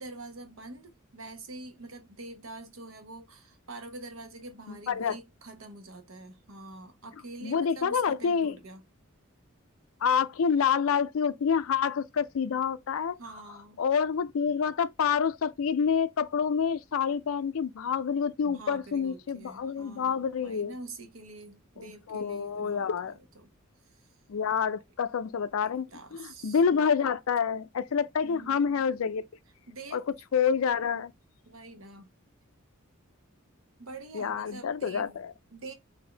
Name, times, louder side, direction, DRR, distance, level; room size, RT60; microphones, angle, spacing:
voice 1, 0.0-8.8 13.2-13.8 18.4-23.5 24.0-24.1 25.6-26.6 28.2-28.9 29.7-30.0 31.4-32.1 33.8-35.2 35.5-35.7, right 2 dB, 70° right, 1.0 m, -46 dB
voice 2, 4.7-5.2 7.4-8.6 10.0-13.2 13.8-20.7 21.8-23.1 24.3-25.9 26.1-29.3 29.9-30.0 30.3-31.1 34.1-35.3, left 6 dB, 70° left, 0.4 m, -27 dB
4.3 x 2.7 x 3.3 m
head